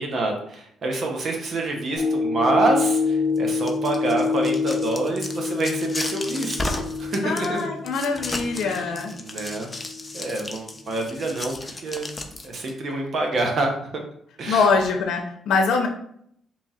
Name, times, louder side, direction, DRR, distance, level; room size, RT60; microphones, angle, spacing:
voice 1, 0.0-7.7 8.6-9.7 10.1-12.2 12.4-13.7 14.4-14.7, right 2 dB, 55° right, 2 dB, 0.7 m, -27 dB
sound 1, 2.0-10.4 10.9-11.0, left 4 dB, 40° right, 1.1 m, -27 dB
sound 2, 3.4-12.7, left 2 dB, 20° left, 0.5 m, -34 dB
voice 2, 7.2-9.1 14.5-15.9, left 4 dB, 75° left, 4 dB, 0.6 m, -23 dB
2.9 x 2.4 x 4.1 m, 0.68 s
cardioid pair, 90°, 0 cm